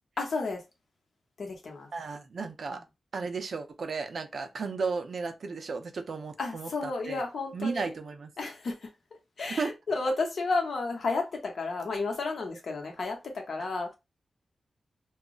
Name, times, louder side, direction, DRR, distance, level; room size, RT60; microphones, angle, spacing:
voice 1, 0.2-0.6 1.4-1.9 2.7-2.8 6.4-7.9 8.4-8.9 9.4-13.9, left 3 dB, 60° left, 0.9 m, -32 dB
voice 2, 1.9-2.8 3.1-7.2 7.5-8.3 9.6-9.7, right 4 dB, 55° right, 0.5 m, -34 dB
2.3 x 2.0 x 3.7 m
wide cardioid pair, 125°, 0 cm